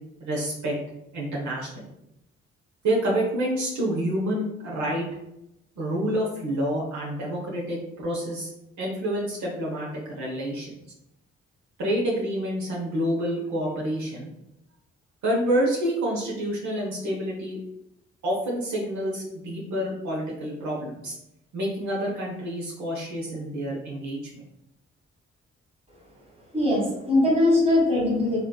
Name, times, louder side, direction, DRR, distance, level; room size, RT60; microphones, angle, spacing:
voice 1, 0.2-0.8 1.1-1.9 2.8-5.1 5.8-8.5 8.8-10.7 11.8-14.3 15.2-17.6 18.2-21.1 21.5-24.4, right 1 dB, 70° right, -4 dB, 0.8 m, -28 dB
voice 2, 26.5-28.4, left 1 dB, 20° right, -3 dB, 1.4 m, -21 dB
3.2 x 2.5 x 2.2 m, 0.85 s
supercardioid pair, 45°, 29 cm